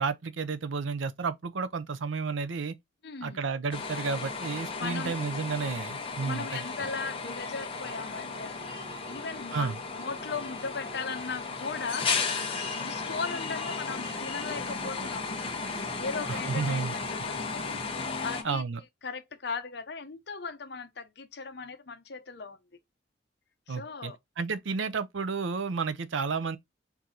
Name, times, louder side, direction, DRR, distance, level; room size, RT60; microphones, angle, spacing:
voice 1, 0.0-2.7 3.2-6.9 9.5-9.8 16.3-17.0 18.4-18.8 23.7-26.6, right 5 dB, 85° right, 0.6 m, -32 dB
voice 2, 3.0-3.4 4.8-5.1 6.2-8.6 9.1-12.1 12.7-15.4 16.0-17.6 18.2-18.6 19.0-22.6 23.7-24.2, left 4 dB, 60° left, 0.8 m, -37 dB
sound 1, 3.7-18.4, left 4 dB, 30° left, 0.9 m, -35 dB
4.7 x 2.7 x 3.8 m
head